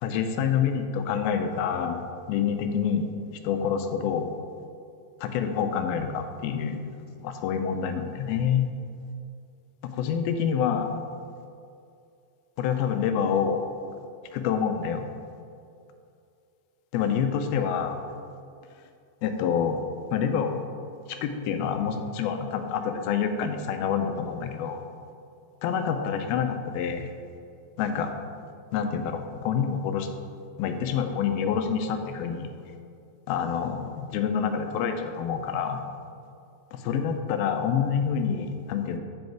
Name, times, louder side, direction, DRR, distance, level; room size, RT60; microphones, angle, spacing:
voice 1, 0.0-3.1 3.4-4.3 5.2-6.9 7.2-8.7 9.8-10.9 12.6-13.6 14.3-15.0 16.9-18.0 19.2-19.8 20.1-20.6 21.1-24.8 25.6-27.1 27.8-28.1 28.7-30.1 30.6-32.5 33.3-35.8 36.7-39.0, left 7 dB, 90° left, 7 dB, 2.5 m, -27 dB
7.9 x 5.7 x 4.5 m, 2.4 s
omnidirectional pair, 4.2 m